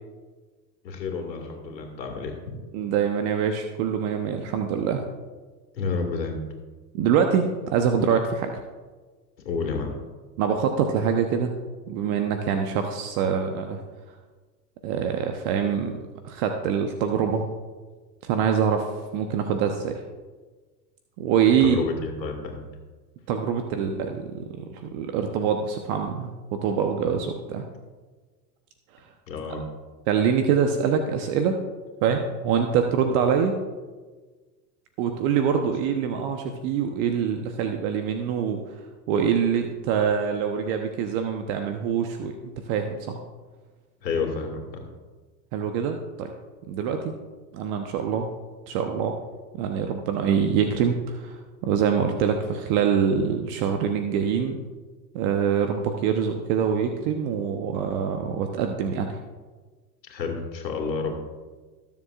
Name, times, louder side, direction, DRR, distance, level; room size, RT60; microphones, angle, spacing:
voice 1, 0.8-2.4 5.7-6.4 9.4-9.9 21.6-22.7 29.3-29.6 44.0-44.8 60.1-61.1, left 4 dB, 85° left, 2 dB, 2.3 m, -30 dB
voice 2, 2.7-5.0 6.9-8.5 10.4-11.5 11.9-13.8 14.8-16.0 16.2-17.4 18.2-18.9 19.1-20.0 21.2-21.8 23.3-27.6 30.1-31.6 32.0-33.6 35.0-38.6 39.1-42.3 42.7-43.2 45.5-46.3 46.7-47.1 47.5-48.3 48.7-49.2 49.6-54.6 55.1-59.2, right 7 dB, 55° right, 5 dB, 1.1 m, -24 dB
20.0 x 7.2 x 2.5 m, 1.3 s
hypercardioid pair, 90°, 50 cm